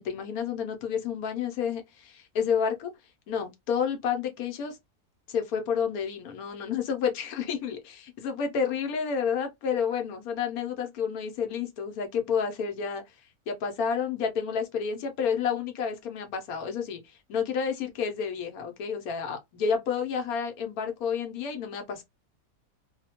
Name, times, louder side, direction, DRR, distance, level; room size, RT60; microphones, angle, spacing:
voice 1, 0.0-2.9 3.3-4.8 5.3-13.0 13.5-22.0, left 6 dB, 75° left, 1.1 m, -30 dB
2.7 x 2.1 x 2.8 m
omnidirectional pair, 1.6 m